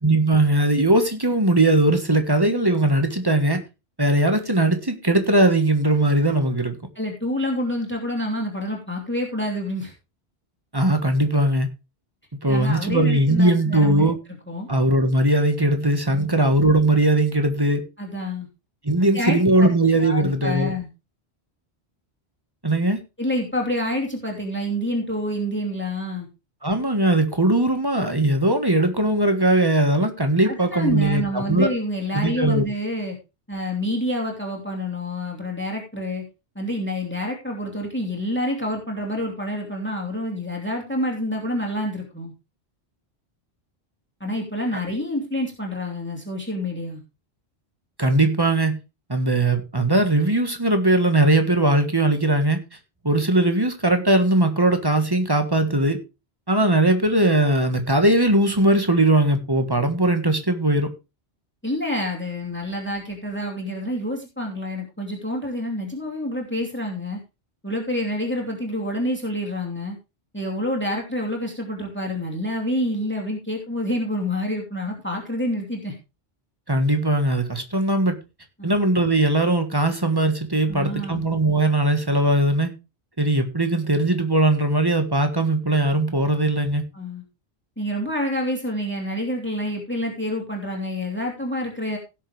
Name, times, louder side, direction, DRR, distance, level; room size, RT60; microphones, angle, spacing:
voice 1, 0.0-3.6 4.0-6.8 10.7-11.7 12.4-14.2 14.7-17.8 18.8-20.7 22.6-23.0 26.6-31.7 32.1-32.6 48.0-48.8 49.1-52.6 53.0-56.0 56.5-60.9 76.7-78.2 78.6-82.7 83.2-86.8, right 1 dB, 20° right, 1.5 m, -19 dB
voice 2, 7.0-9.9 12.4-14.1 14.5-14.7 16.1-16.4 18.0-18.5 19.1-19.7 20.0-20.9 23.2-26.3 30.4-33.2 33.5-36.2 36.5-42.3 44.2-47.0 61.6-67.2 67.6-70.0 70.3-75.9 78.6-78.8 80.7-81.2 86.9-87.2 87.8-92.0, left 1 dB, 10° left, 2.7 m, -27 dB
17.0 x 6.7 x 3.3 m
omnidirectional pair, 1.1 m